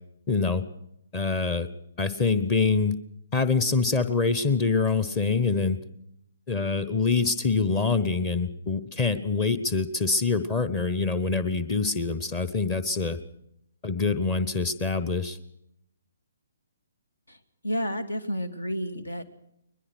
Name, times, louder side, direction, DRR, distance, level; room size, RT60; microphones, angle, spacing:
voice 1, 0.3-0.6 1.1-1.7 2.0-2.9 3.3-5.8 6.5-13.2 13.8-15.4, left 4 dB, 20° left, 13 dB, 1.1 m, -25 dB
voice 2, 17.3-19.2, equal, 70° left, 11 dB, 2.3 m, -31 dB
21.5 x 21.5 x 6.2 m, 0.77 s
figure-of-eight pair, 130°, 0 cm